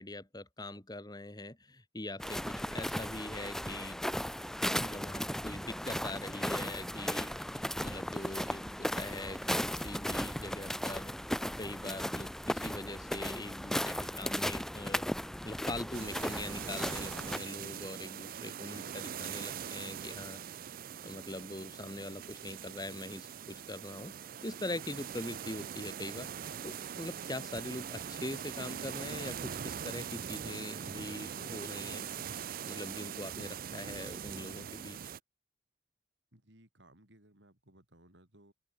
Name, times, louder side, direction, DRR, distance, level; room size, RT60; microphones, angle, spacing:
voice 1, 0.0-4.0 4.8-11.1 11.6-15.0 15.4-20.4 21.0-24.1 24.4-26.3 26.6-32.1 32.7-35.1, left 1 dB, 20° left, 3.0 m, -42 dB
sound 1, 2.2-17.4, equal, 5° left, 0.8 m, -36 dB
sound 2, 15.9-35.2, right 8 dB, 50° right, 0.5 m, -42 dB
voice 2, 36.3-38.5, right 1 dB, 80° right, 5.0 m, -61 dB
open air
head